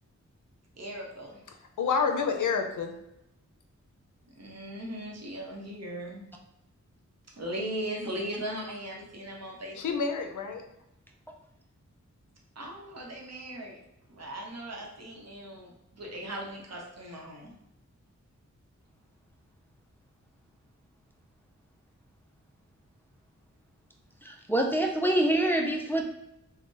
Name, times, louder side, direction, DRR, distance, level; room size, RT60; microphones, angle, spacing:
voice 1, 0.8-1.4 4.3-6.3 7.4-10.1 12.6-13.8 14.1-17.5, right 1 dB, 60° right, -2 dB, 0.8 m, -38 dB
voice 2, 1.8-2.9 9.8-10.6, left 5 dB, 85° left, 5 dB, 0.5 m, -28 dB
voice 3, 24.2-26.0, right 1 dB, 5° left, 1 dB, 0.3 m, -26 dB
2.5 x 2.1 x 3.7 m, 0.86 s
wide cardioid pair, 100°, 30 cm